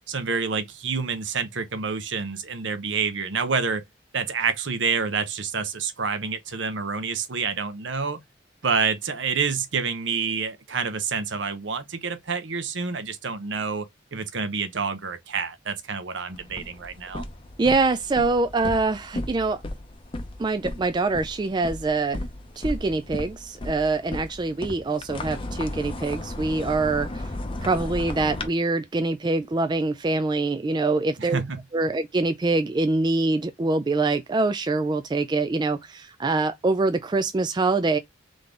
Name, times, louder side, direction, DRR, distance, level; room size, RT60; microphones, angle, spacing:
voice 1, 0.1-3.8 4.1-8.2 8.6-17.2 31.2-31.6, right 5 dB, 65° right, 0.8 m, -28 dB
sound 1, 16.3-28.5, left 1 dB, 25° left, 0.6 m, -35 dB
voice 2, 17.6-19.6 20.4-22.2 22.6-27.3 27.6-31.4 31.7-38.0, right 3 dB, 20° right, 0.3 m, -24 dB
3.7 x 3.4 x 3.7 m
head